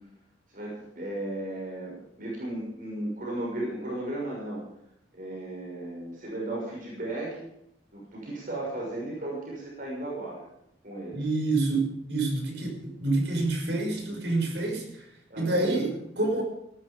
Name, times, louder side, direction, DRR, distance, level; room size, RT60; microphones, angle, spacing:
voice 1, 0.5-4.6 5.1-7.5 7.9-10.4 10.8-11.3 15.3-16.0, right 1 dB, 50° right, -3 dB, 6.3 m, -35 dB
voice 2, 11.1-15.1 15.4-16.4, right 2 dB, 70° right, 1 dB, 5.7 m, -27 dB
18.5 x 12.5 x 5.4 m, 0.76 s
head